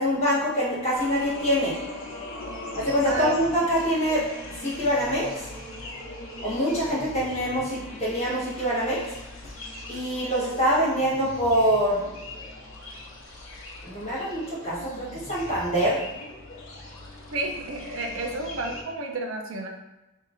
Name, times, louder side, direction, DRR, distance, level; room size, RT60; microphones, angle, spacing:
voice 1, 0.0-1.7 2.7-4.3 4.6-5.5 6.4-9.0 9.9-12.0 13.8-16.0, equal, 30° left, -8 dB, 1.3 m, -25 dB
sound 1, 0.9-18.8, left 1 dB, 70° left, 0.7 m, -40 dB
voice 2, 17.3-19.7, right 2 dB, 75° right, 2 dB, 0.5 m, -31 dB
2.8 x 2.4 x 3.6 m, 0.99 s
head